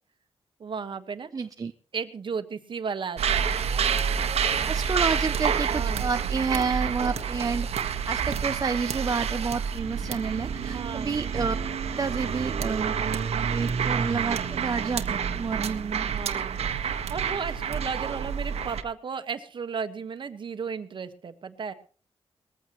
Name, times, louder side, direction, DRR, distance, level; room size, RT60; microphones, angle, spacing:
voice 1, 0.6-1.3 1.9-3.5 5.7-6.1 10.6-11.2 16.0-16.6 17.1-21.7, right 6 dB, 50° right, 9 dB, 1.5 m, -34 dB
voice 2, 1.3-1.7 4.6-11.6 11.9-13.0 13.4-16.1, right 5 dB, 35° right, 8 dB, 0.6 m, -30 dB
sound 1, 3.2-18.8, right 7 dB, 80° right, 1.4 m, -28 dB
20.5 x 14.5 x 3.1 m, 0.38 s
wide cardioid pair, 140°, 11 cm